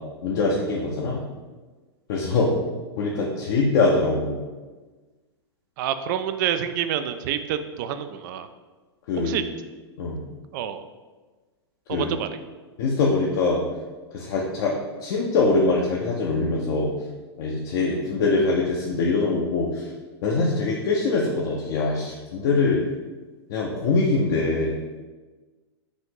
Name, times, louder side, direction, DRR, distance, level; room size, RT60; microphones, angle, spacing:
voice 1, 0.2-1.2 2.1-2.5 3.0-4.4 9.1-9.4 10.0-10.2 11.9-12.1 12.8-13.6 14.1-14.7 15.0-16.9 17.4-19.9 20.2-22.8 23.5-24.7, left 3 dB, 55° left, -3 dB, 0.7 m, -23 dB
voice 2, 5.8-8.5 9.2-9.4 10.5-10.8 11.9-12.3, right 10 dB, 45° right, 10 dB, 0.4 m, -27 dB
5.0 x 2.6 x 3.7 m, 1.3 s
hypercardioid pair, 105°, 14 cm